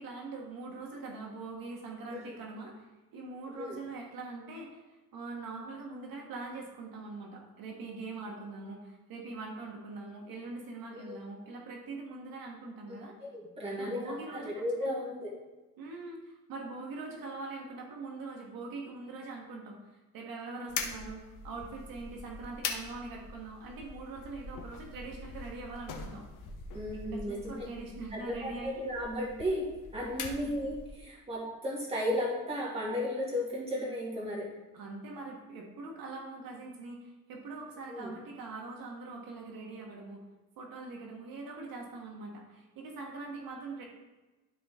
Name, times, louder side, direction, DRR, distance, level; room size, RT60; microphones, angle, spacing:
voice 1, 0.0-13.2 13.7-15.0 15.8-19.8 20.1-26.2 26.9-28.8 30.1-30.6 34.7-40.2 40.6-43.8, right 3 dB, 75° right, 0 dB, 1.5 m, -43 dB
voice 2, 12.9-15.3 26.7-27.7 28.1-29.7 29.9-34.5 37.9-38.1, left 1 dB, 15° right, -5 dB, 2.2 m, -35 dB
sound 1, 20.7-31.0, left 4 dB, 60° left, 1.1 m, -43 dB
12.5 x 4.3 x 3.7 m, 1.1 s
cardioid pair, 165°, 35 cm